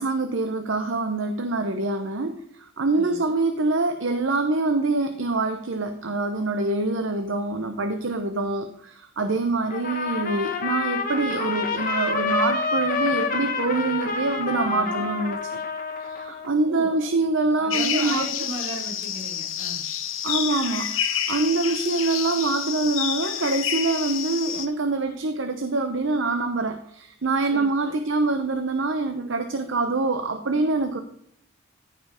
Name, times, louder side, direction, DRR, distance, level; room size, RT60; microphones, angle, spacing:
voice 1, 0.0-2.4 2.8-15.4 16.0-18.3 20.2-31.0, right 3 dB, 60° right, 7 dB, 0.8 m, -25 dB
voice 2, 2.9-3.3 14.6-15.1 16.6-17.1 17.5-19.8 27.5-27.9, right 1 dB, 75° right, -2 dB, 4.8 m, -36 dB
Trumpet, 9.7-16.5, left 4 dB, 40° left, 1.2 m, -28 dB
sound 1, 17.7-24.7, left 9 dB, 65° left, 1.1 m, -29 dB
14.0 x 5.3 x 5.0 m, 0.67 s
head